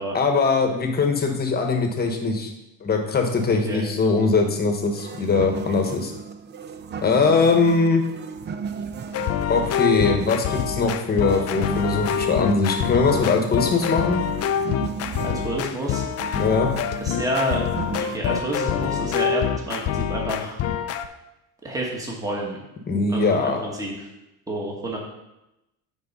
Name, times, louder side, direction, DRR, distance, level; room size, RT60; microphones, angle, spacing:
voice 1, 0.1-2.5 2.8-6.1 7.0-8.0 9.5-14.2 16.4-16.7 22.9-23.6, left 4 dB, 25° left, 3 dB, 1.2 m, -21 dB
voice 2, 3.5-3.8 13.8-14.0 15.2-16.0 17.0-17.6 18.0-20.6 21.6-22.6 23.1-23.9 24.5-25.0, right 1 dB, 10° right, -1 dB, 1.4 m, -29 dB
sound 1, 4.9-18.2, right 6 dB, 30° right, 0.4 m, -36 dB
sound 2, 9.1-21.1, left 9 dB, 45° left, 0.5 m, -26 dB
8.8 x 4.7 x 5.4 m, 0.91 s
cardioid pair, 155°, 35 cm